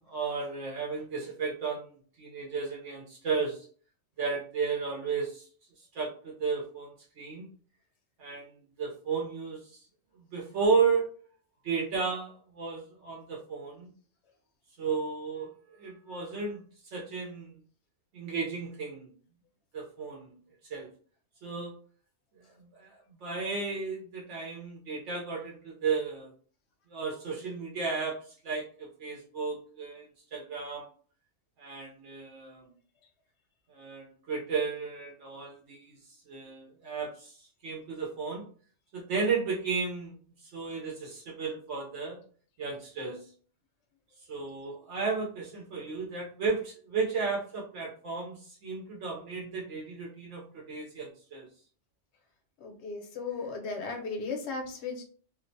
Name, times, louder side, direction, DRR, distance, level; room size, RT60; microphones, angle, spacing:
voice 1, 0.1-1.9 2.2-3.7 4.2-5.5 5.9-7.5 8.2-9.8 10.2-11.1 11.6-13.9 14.8-15.5 15.8-16.6 16.9-17.5 18.1-19.1 19.7-20.4 20.7-20.9 21.4-21.7 22.6-26.3 26.9-28.2 28.4-30.1 30.3-30.8 31.6-32.7 33.7-35.9 36.3-38.5 38.9-42.2 42.6-43.2 44.3-51.5, right 5 dB, 75° right, -2 dB, 0.9 m, -33 dB
voice 2, 52.6-55.0, left 4 dB, 70° left, 3 dB, 0.9 m, -36 dB
2.5 x 2.0 x 2.5 m, 0.44 s
omnidirectional pair, 1.2 m